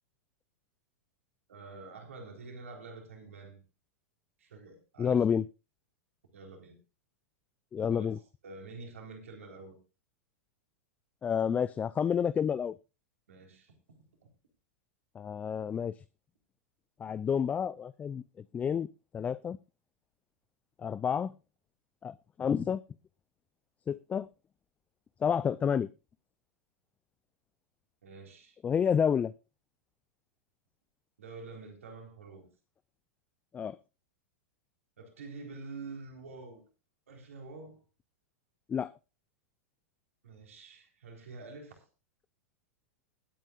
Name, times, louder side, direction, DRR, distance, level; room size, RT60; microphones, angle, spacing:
voice 1, 1.5-3.6 4.4-5.2 6.3-6.8 7.9-8.1 8.4-9.8 13.3-13.8 14.2-14.3 28.0-28.6 31.2-32.5 35.0-36.6 37.1-37.8 40.2-41.8, right 3 dB, 70° right, 4.1 m, -47 dB
voice 2, 5.0-5.4 7.7-8.2 11.2-12.7 15.2-15.9 17.0-18.2 18.5-18.9 19.1-19.6 20.8-21.3 22.0-22.8 23.9-24.3 25.2-25.9 28.6-29.3 33.5-33.8 38.7-38.9, left 7 dB, 20° left, 0.4 m, -29 dB
20.5 x 8.9 x 2.5 m
figure-of-eight pair, 95°, 8 cm